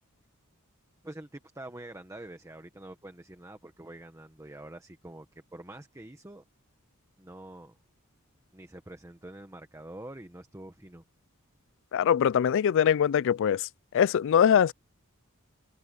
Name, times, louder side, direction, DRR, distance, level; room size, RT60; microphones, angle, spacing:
voice 1, 1.0-6.4 7.2-7.8 8.5-11.0, right 1 dB, 15° right, 1.2 m, -46 dB
voice 2, 11.9-13.7 13.9-14.7, left 8 dB, 60° left, 0.3 m, -22 dB
head